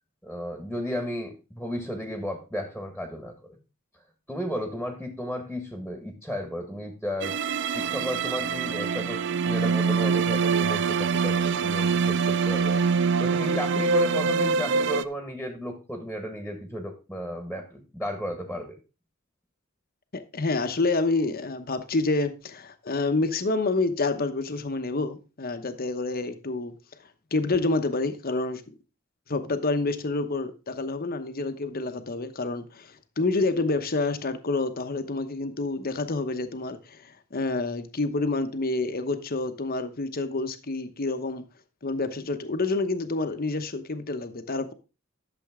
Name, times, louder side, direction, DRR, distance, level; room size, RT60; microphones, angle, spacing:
voice 1, 0.2-3.3 4.3-7.4 7.6-12.8 13.2-18.8, equal, ahead, 1.6 m, -34 dB
sound 1, 7.2-15.0, right 5 dB, 60° right, 0.5 m, -24 dB
voice 2, 20.1-26.7 27.3-28.8 29.3-41.4 41.8-44.7, left 3 dB, 45° left, 1.0 m, -28 dB
12.0 x 7.0 x 3.6 m
head